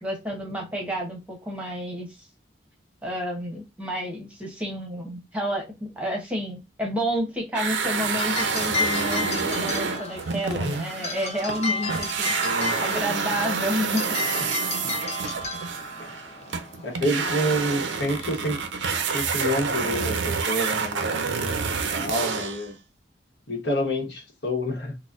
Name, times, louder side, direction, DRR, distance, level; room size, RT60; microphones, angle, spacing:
voice 1, 0.0-2.3 3.0-12.3 12.8-14.0, equal, 5° right, 0.9 m, -30 dB
sound 1, 7.5-11.6 11.9-22.7, right 5 dB, 80° right, 0.5 m, -28 dB
sound 2, 7.9-18.3, left 2 dB, 35° left, 0.6 m, -32 dB
voice 2, 12.4-12.8 14.8-14.9 16.0-16.2 16.8-18.6 19.1-21.4 21.9-22.8 23.5-25.0, equal, 70° left, 1.1 m, -28 dB
3.9 x 2.1 x 2.4 m
head